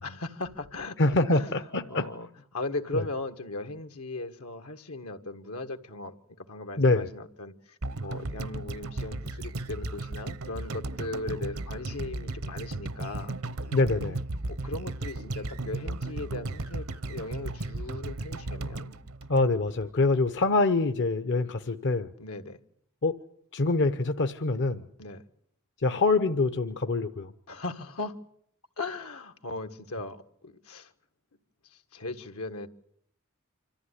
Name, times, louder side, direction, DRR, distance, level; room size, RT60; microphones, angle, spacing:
voice 1, 0.0-13.3 14.5-18.9 22.2-22.6 25.0-25.2 27.5-28.1 28.8-30.9 31.6-32.7, left 2 dB, 80° left, 1.6 m, -38 dB
voice 2, 1.0-2.1 2.9-3.0 6.8-7.1 13.7-14.2 19.3-22.1 23.0-23.1 23.5-24.8 25.8-27.3, left 3 dB, 55° left, 0.8 m, -25 dB
sound 1, 7.8-20.0 20.3-20.4, right 2 dB, 75° right, 0.9 m, -35 dB
26.0 x 14.0 x 9.9 m
head